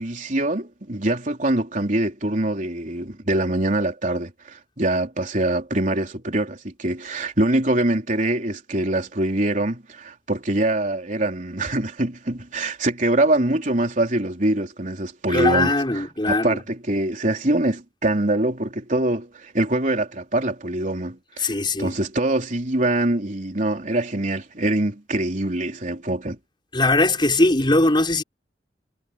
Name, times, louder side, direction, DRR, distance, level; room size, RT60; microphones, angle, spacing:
voice 1, 0.0-21.5 21.8-26.4, right 1 dB, 45° right, 3.9 m, -24 dB
voice 2, 15.3-16.6 21.4-22.0 26.7-28.2, left 2 dB, 25° left, 5.1 m, -20 dB
head